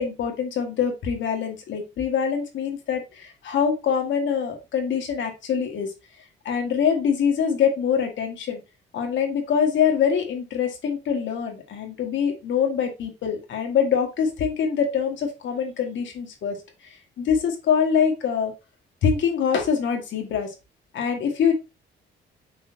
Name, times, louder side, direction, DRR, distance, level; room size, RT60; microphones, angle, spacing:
voice 1, 0.0-5.9 6.5-8.6 8.9-16.6 17.2-18.5 19.0-20.5 20.9-21.5, left 7 dB, 70° left, 4 dB, 1.9 m, -24 dB
7.9 x 4.3 x 2.8 m, 0.26 s
cardioid pair, 90°, 20 cm